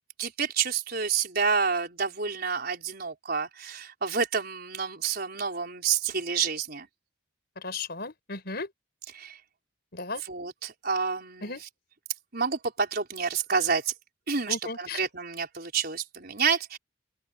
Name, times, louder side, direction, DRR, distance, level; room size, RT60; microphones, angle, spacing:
voice 1, 0.2-6.9 9.1-9.4 10.2-11.6 12.3-13.9 14.3-16.8, right 6 dB, 50° right, 5.1 m, -29 dB
voice 2, 7.6-8.7 9.9-10.2 11.4-11.6 14.5-15.0, left 3 dB, 55° left, 5.2 m, -35 dB
open air
head